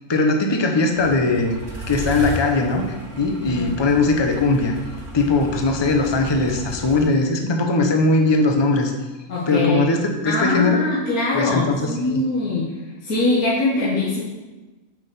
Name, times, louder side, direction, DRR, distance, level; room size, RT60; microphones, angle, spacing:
voice 1, 0.1-1.6 1.9-2.9 3.2-4.7 5.1-8.9 9.5-10.0 10.2-10.8 11.3-12.2, left 3 dB, 25° left, 4 dB, 0.6 m, -20 dB
sound 1, 1.0-7.1, right 1 dB, 55° right, 2.1 m, -34 dB
voice 2, 9.3-9.9 10.3-12.7 13.0-14.2, left 2 dB, 75° left, -6 dB, 1.9 m, -22 dB
6.1 x 5.6 x 6.8 m, 1.2 s
omnidirectional pair, 1.5 m